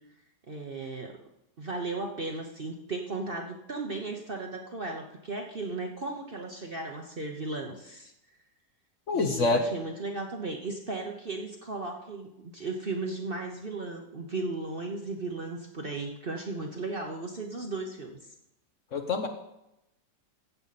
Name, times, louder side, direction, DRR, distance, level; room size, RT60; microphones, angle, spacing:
voice 1, 0.5-1.2 1.6-8.1 9.1-18.3, right 3 dB, 40° right, 2 dB, 0.9 m, -36 dB
voice 2, 9.1-9.6 18.9-19.3, left 3 dB, 55° left, 4 dB, 1.1 m, -26 dB
14.5 x 8.1 x 4.2 m, 0.87 s
omnidirectional pair, 1.9 m